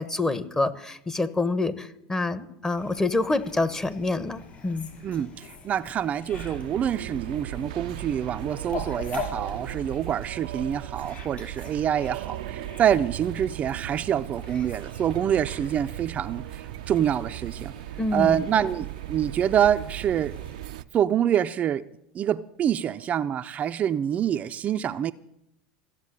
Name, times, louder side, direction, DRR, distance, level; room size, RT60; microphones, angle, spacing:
voice 1, 0.0-4.9 18.0-18.5, left 2 dB, 15° left, 1.2 m, -27 dB
Fowl, 2.8-20.8, left 4 dB, 35° left, 5.7 m, -44 dB
voice 2, 5.0-17.7 18.1-20.3 20.9-21.9 22.1-25.1, right 9 dB, 35° right, 0.5 m, -26 dB
sound 1, 6.3-20.8, right 15 dB, 80° right, 0.5 m, -37 dB
15.5 x 7.4 x 10.0 m
hypercardioid pair, 100°, 4 cm